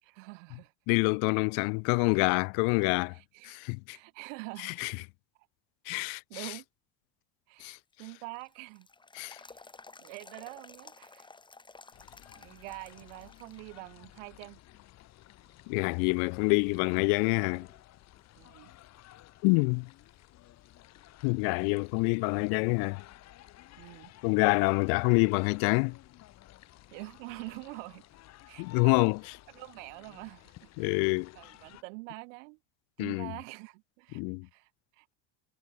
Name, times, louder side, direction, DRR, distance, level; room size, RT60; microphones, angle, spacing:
voice 1, 0.0-0.7 2.1-2.2 3.1-3.6 3.9-4.8 5.9-6.6 7.5-8.9 9.3-9.6 10.0-11.3 12.3-14.6 18.4-18.7 23.8-24.1 26.9-28.0 28.5-29.1 29.5-31.1 31.3-32.6 33.0-34.2 34.5-35.2, right 30 dB, 85° right, 4.7 m, -45 dB
voice 2, 0.9-3.1 3.4-4.0 4.6-4.9 5.9-6.2 7.6-7.8 9.1-9.4 15.7-17.7 19.4-19.9 21.2-23.0 24.2-26.0 28.6-29.2 30.8-31.3 33.0-33.3 34.1-34.5, left 40 dB or more, 70° left, 0.8 m, -26 dB
sound 1, 7.7-13.8 14.2-14.3 15.0-15.5 16.0-16.1 16.6-17.8 18.2-18.3 21.6-21.7 24.7-24.8, left 3 dB, 10° left, 4.9 m, -54 dB
sound 2, 11.9-31.8, left 15 dB, 45° left, 1.7 m, -55 dB
cardioid pair, 140°, 37 cm